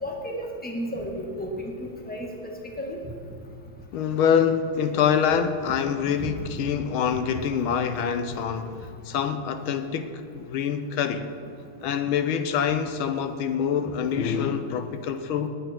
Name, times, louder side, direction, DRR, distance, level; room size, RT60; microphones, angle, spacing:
voice 1, 0.0-1.5 1.8-2.5 2.8-3.0 6.2-6.3, equal, 5° left, 0 dB, 1.5 m, -33 dB
voice 2, 3.9-8.8 9.0-11.2 11.8-15.5, left 7 dB, 85° left, 9 dB, 1.6 m, -25 dB
19.5 x 8.7 x 4.5 m, 2.5 s
omnidirectional pair, 2.3 m